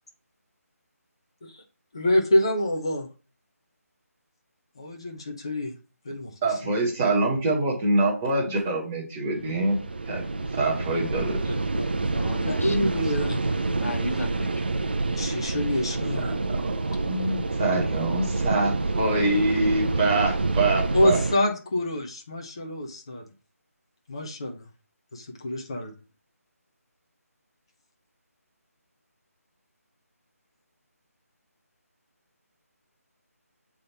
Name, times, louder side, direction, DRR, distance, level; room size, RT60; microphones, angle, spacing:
voice 1, 1.9-3.1 4.8-5.7 6.0-6.6 11.5-11.9 12.4-13.4 15.2-16.4 20.9-23.2 24.1-24.6 25.1-25.9, left 1 dB, 20° left, 2 dB, 0.8 m, -26 dB
voice 2, 6.4-9.8 10.0-10.2 10.5-11.5 16.1-21.2, right 2 dB, 5° right, -5 dB, 0.8 m, -25 dB
sound 1, 9.3-21.4, right 3 dB, 40° right, 0.5 m, -27 dB
voice 3, 12.1-13.4 13.8-14.8, left 2 dB, 65° left, 5 dB, 1.5 m, -36 dB
7.4 x 3.6 x 4.0 m, 0.33 s
figure-of-eight pair, 180°, 9 cm